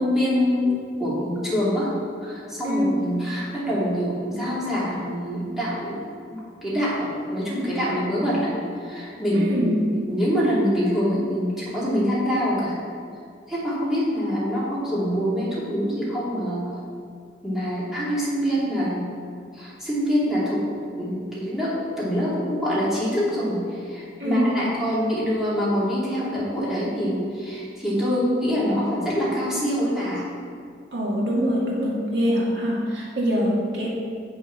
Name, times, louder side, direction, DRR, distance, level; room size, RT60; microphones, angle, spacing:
voice 1, 0.0-1.9 2.2-6.0 6.3-12.8 13.5-16.8 17.4-19.1 19.5-20.7 21.0-30.3, equal, ahead, -9 dB, 2.7 m, -25 dB
voice 2, 2.6-3.0 9.3-9.8 24.2-24.6 30.9-33.9, equal, 75° right, -4 dB, 2.1 m, -24 dB
8.6 x 6.5 x 5.9 m, 2.3 s
head